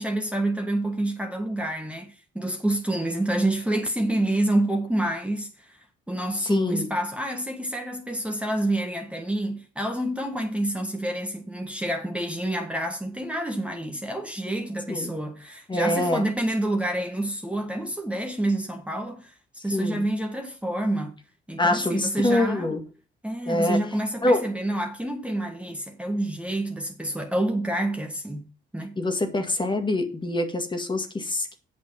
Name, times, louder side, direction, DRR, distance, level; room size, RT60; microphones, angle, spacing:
voice 1, 0.0-5.8 6.1-19.3 19.6-21.1 21.5-22.7 23.2-28.4 28.7-29.0, right 1 dB, 5° right, 1.5 m, -28 dB
voice 2, 6.4-6.9 14.9-15.1 15.7-16.3 19.7-20.0 21.6-22.8 23.5-23.8 24.2-24.4 29.0-31.6, left 1 dB, 25° left, 2.0 m, -25 dB
8.6 x 5.7 x 5.5 m
cardioid pair, 90°, 20 cm